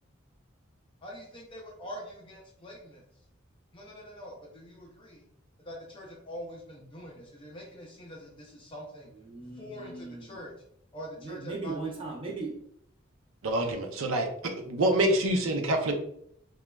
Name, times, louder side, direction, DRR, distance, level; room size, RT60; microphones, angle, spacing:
voice 1, 1.0-3.0 3.7-5.2 5.7-9.1 9.6-10.5 10.9-11.7, equal, 25° left, -2 dB, 0.4 m, -44 dB
voice 2, 9.1-10.4 11.2-12.5, right 3 dB, 25° right, -2 dB, 0.6 m, -38 dB
voice 3, 13.4-14.3 14.7-15.9, right 1 dB, 75° right, 4 dB, 0.5 m, -26 dB
3.0 x 2.3 x 2.2 m, 0.69 s
head